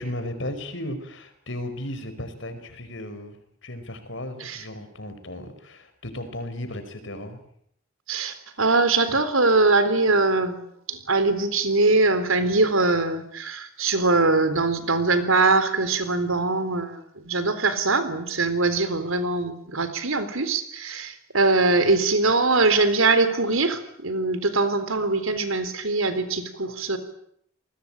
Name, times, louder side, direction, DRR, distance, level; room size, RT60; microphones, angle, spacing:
voice 1, 0.0-7.4 9.1-9.2, left 1 dB, 60° left, 9 dB, 5.0 m, -35 dB
voice 2, 8.1-10.6 10.9-27.0, right 3 dB, 80° right, 12 dB, 3.8 m, -22 dB
28.0 x 20.5 x 8.9 m, 0.70 s
head